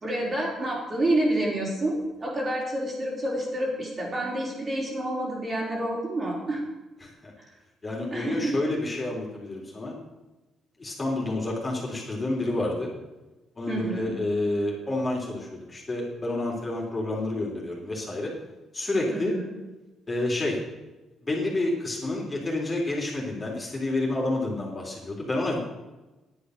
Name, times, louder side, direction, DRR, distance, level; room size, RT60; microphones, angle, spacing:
voice 1, 0.0-6.6 8.1-8.5 13.7-14.1 19.1-19.5, right 1 dB, 35° right, -3 dB, 4.4 m, -28 dB
voice 2, 7.0-7.3 7.8-9.9 10.8-12.9 13.6-18.3 18.7-19.4 20.1-20.6 21.2-25.6, left 2 dB, 25° left, -2 dB, 3.8 m, -29 dB
10.5 x 8.5 x 6.6 m, 1.1 s
cardioid pair, 90°, 0 cm